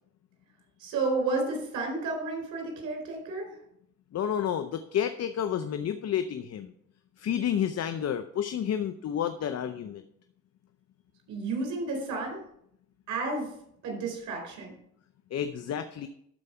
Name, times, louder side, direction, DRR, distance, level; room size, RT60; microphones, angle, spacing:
voice 1, 0.8-3.6 11.3-12.4 13.1-13.5 13.8-14.7, right 3 dB, 85° right, 2 dB, 4.4 m, -31 dB
voice 2, 4.1-6.7 7.2-10.0 15.3-16.1, left 9 dB, 55° left, 9 dB, 0.7 m, -30 dB
12.5 x 4.8 x 5.7 m, 0.70 s
cardioid pair, 90°, 30 cm